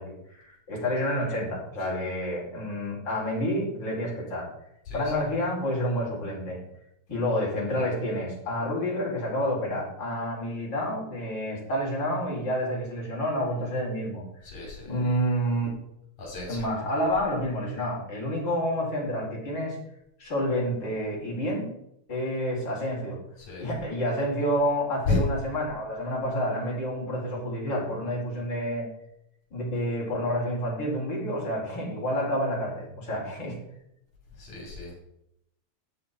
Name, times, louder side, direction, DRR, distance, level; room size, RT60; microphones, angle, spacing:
voice 1, 0.0-4.5 4.9-6.6 7.1-14.2 14.6-15.7 16.5-19.8 20.2-21.7 22.1-23.2 23.6-28.9 29.5-33.5, equal, 35° left, -4 dB, 5.1 m, -29 dB
voice 2, 14.4-14.9 16.2-16.7 23.5-23.6 25.1-25.2 34.4-35.0, left 3 dB, 70° left, -2 dB, 4.3 m, -31 dB
12.0 x 8.9 x 4.5 m, 0.79 s
omnidirectional pair, 3.4 m